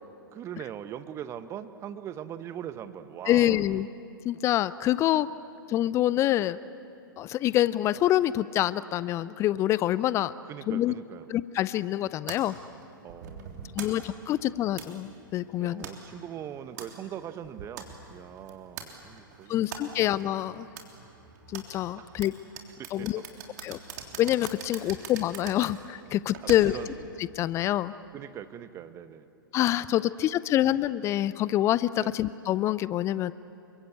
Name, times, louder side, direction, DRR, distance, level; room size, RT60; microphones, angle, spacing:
voice 1, 0.3-3.6 5.1-5.3 10.5-11.3 13.0-13.9 14.2-14.3 15.6-20.0 22.0-22.2 22.8-23.2 24.8-24.9 26.4-26.9 28.1-29.3 30.0-30.1 32.0-32.2, right 10 dB, 25° right, 12 dB, 1.2 m, -41 dB
voice 2, 3.3-3.9 4.2-5.3 5.7-6.6 7.2-10.3 10.7-10.9 11.3-12.6 13.7-15.9 19.5-20.6 21.5-22.3 22.9-23.2 23.6-23.8 24.2-26.7 27.4-27.9 29.5-33.3, left 13 dB, 25° left, 18 dB, 0.5 m, -26 dB
sound 1, 12.3-27.0, right 6 dB, 50° right, 3.4 m, -44 dB
27.5 x 23.5 x 8.5 m, 2.7 s
figure-of-eight pair, 105°, 12 cm